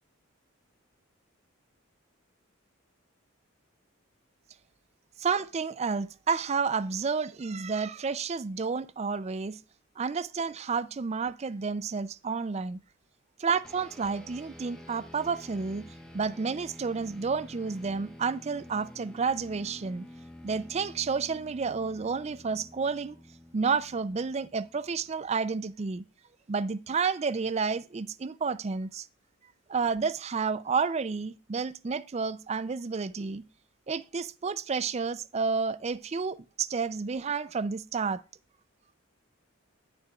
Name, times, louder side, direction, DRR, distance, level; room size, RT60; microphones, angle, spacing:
voice 1, 5.2-9.6 10.0-12.8 13.4-15.9 16.1-20.1 20.4-23.2 23.5-26.0 26.5-29.1 29.7-33.4 33.9-38.2, right 5 dB, 30° right, 0.4 m, -30 dB
sound 1, 13.6-25.3, left 1 dB, 5° left, 1.2 m, -49 dB
10.5 x 7.4 x 2.3 m
head